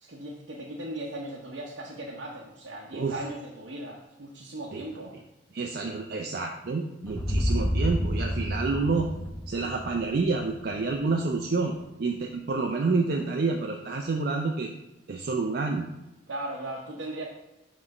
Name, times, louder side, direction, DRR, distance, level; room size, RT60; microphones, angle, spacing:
voice 1, 0.0-5.2 16.3-17.3, right 1 dB, 80° right, -2 dB, 0.8 m, -38 dB
voice 2, 5.5-9.1 9.5-14.7 15.1-15.9, right 3 dB, 55° right, 2 dB, 0.5 m, -28 dB
sound 1, 7.1-11.1, equal, 10° left, 0.7 m, -30 dB
5.9 x 3.1 x 5.3 m, 0.97 s
head